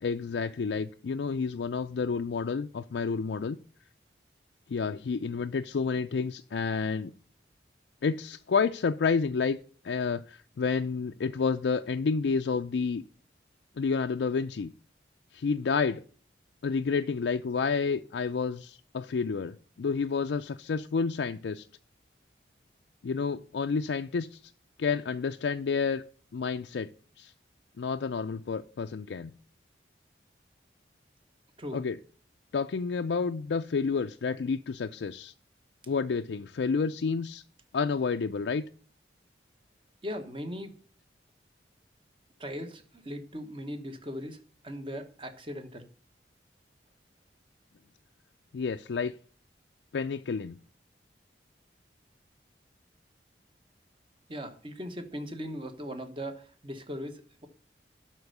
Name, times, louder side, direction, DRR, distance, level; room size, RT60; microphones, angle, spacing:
voice 1, 0.0-3.6 4.7-7.1 8.0-9.6 9.8-13.0 13.8-14.7 15.3-16.0 16.6-21.7 23.0-24.4 24.8-26.0 26.3-26.9 27.2-27.3 27.8-29.3 31.7-32.0 32.5-35.3 35.9-37.4 37.7-38.6 48.5-49.1 49.9-50.6, left 5 dB, 75° left, 6 dB, 0.4 m, -30 dB
voice 2, 40.0-40.7 42.4-45.9 54.3-57.5, equal, 30° right, 7 dB, 1.2 m, -39 dB
12.0 x 4.4 x 6.6 m, 0.43 s
head